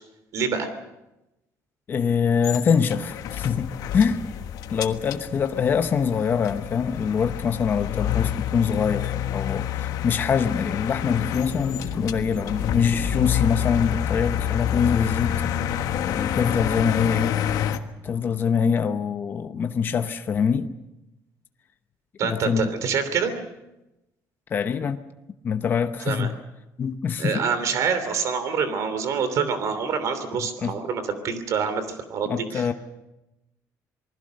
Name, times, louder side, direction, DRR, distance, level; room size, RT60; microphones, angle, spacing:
voice 1, 0.3-0.7 22.2-23.3 26.1-26.3 27.2-32.7, right 6 dB, 50° right, 3.1 m, -26 dB
voice 2, 1.9-4.2 4.7-15.4 15.7-17.4 18.0-20.7 22.2-22.7 24.5-25.0 25.4-26.3 26.8-27.5 30.6-30.8 32.3-32.7, left 6 dB, 30° left, 0.9 m, -24 dB
sound 1, 2.4-17.8, left 11 dB, 65° left, 1.3 m, -28 dB
sound 2, 9.0-17.3, equal, 20° right, 4.8 m, -40 dB
27.5 x 20.0 x 6.5 m
cardioid pair, 175°, 7 cm